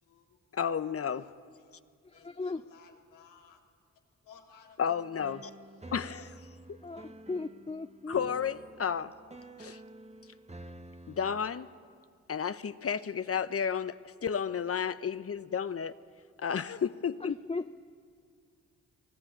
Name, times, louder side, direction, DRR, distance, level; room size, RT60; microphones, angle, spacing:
voice 1, 0.0-1.8 2.1-3.6 4.2-4.8, left 7 dB, 85° left, 2 dB, 2.5 m, -59 dB
voice 2, 0.5-1.3 4.8-5.5 5.9-6.4 8.1-9.1 9.6-9.8 11.1-11.7 12.3-16.0 16.4-17.4, left 7 dB, 45° left, 13 dB, 1.0 m, -32 dB
voice 3, 2.2-2.6 6.8-8.3 17.2-17.8, left 3 dB, 20° left, 9 dB, 0.6 m, -37 dB
sound 1, 4.9-11.4, right 1 dB, 20° right, 1.5 m, -50 dB
23.0 x 18.5 x 8.9 m, 2.2 s
supercardioid pair, 45°, 32 cm